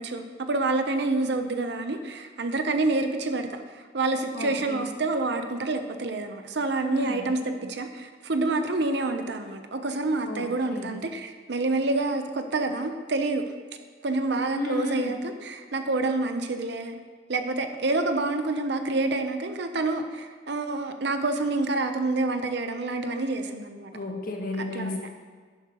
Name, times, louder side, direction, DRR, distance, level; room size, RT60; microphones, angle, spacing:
voice 1, 0.0-13.4 14.0-16.9 17.3-23.9 24.6-25.1, right 2 dB, 60° right, 7 dB, 0.8 m, -28 dB
voice 2, 4.3-4.9 6.9-7.2 10.2-10.9 14.5-15.1 23.9-25.1, left 2 dB, 50° left, 1 dB, 1.4 m, -33 dB
11.0 x 10.5 x 3.0 m, 1.5 s
head